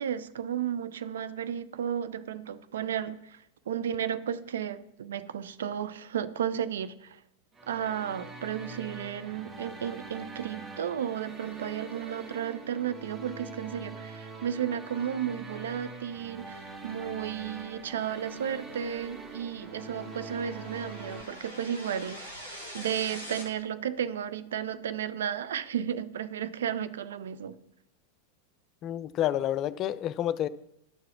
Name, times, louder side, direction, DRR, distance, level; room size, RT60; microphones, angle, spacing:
voice 1, 0.0-3.4 3.7-7.2 7.7-27.5, right 9 dB, 60° right, 14 dB, 0.5 m, -33 dB
sound 1, 7.5-21.2, right 3 dB, 25° right, 1.4 m, -44 dB
sound 2, 16.6-23.4, equal, 90° right, 1.8 m, -46 dB
voice 2, 28.8-30.5, left 12 dB, 35° left, 16 dB, 0.4 m, -29 dB
11.0 x 4.7 x 6.0 m, 0.79 s
figure-of-eight pair, 90°, 0 cm